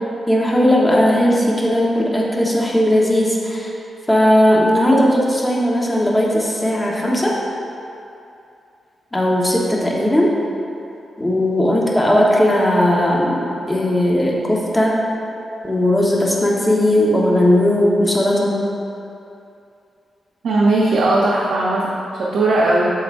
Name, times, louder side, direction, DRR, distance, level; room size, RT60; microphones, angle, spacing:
voice 1, 0.3-3.7 4.1-7.3 9.1-10.3 11.2-15.0 15.6-18.6, left 1 dB, 15° left, -3 dB, 1.1 m, -17 dB
voice 2, 20.4-21.9 22.2-22.8, right 2 dB, 80° right, -5 dB, 0.8 m, -17 dB
8.1 x 6.9 x 2.6 m, 2.7 s
wide cardioid pair, 115°, 0 cm